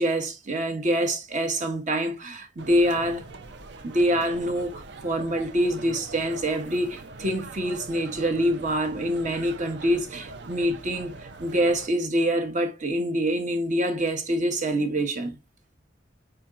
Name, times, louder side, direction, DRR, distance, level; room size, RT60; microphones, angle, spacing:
voice 1, 0.0-3.2 3.8-15.4, right 1 dB, 45° right, 0.9 m, -26 dB
sound 1, 2.6-11.9, right 3 dB, 65° right, 0.5 m, -42 dB
4.6 x 4.2 x 2.5 m
head